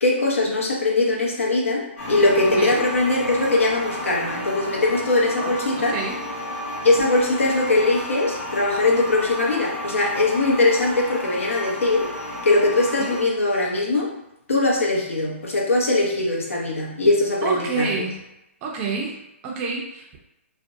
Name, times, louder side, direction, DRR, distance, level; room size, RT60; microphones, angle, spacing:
voice 1, 0.0-6.0 6.8-12.1 12.4-14.1 14.5-17.9, left 2 dB, 90° left, -2 dB, 0.8 m, -21 dB
sound 1, 2.0-13.2, left 1 dB, 70° left, 1.1 m, -32 dB
voice 2, 2.4-2.8 5.4-6.2 13.0-13.2 17.4-18.2 18.6-20.2, right 4 dB, 20° right, -1 dB, 0.4 m, -29 dB
2.5 x 2.1 x 2.5 m, 0.90 s
hypercardioid pair, 150°, 7 cm